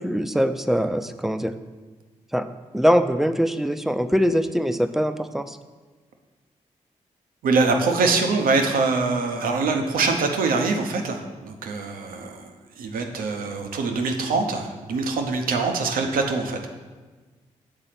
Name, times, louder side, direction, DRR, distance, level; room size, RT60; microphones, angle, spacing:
voice 1, 0.0-1.5 2.3-2.5 2.7-5.6, equal, ahead, 9 dB, 0.5 m, -22 dB
voice 2, 7.4-12.5 12.8-16.7, right 3 dB, 85° right, 4 dB, 0.7 m, -24 dB
6.8 x 4.0 x 5.8 m, 1.3 s
supercardioid pair, 40°, 14 cm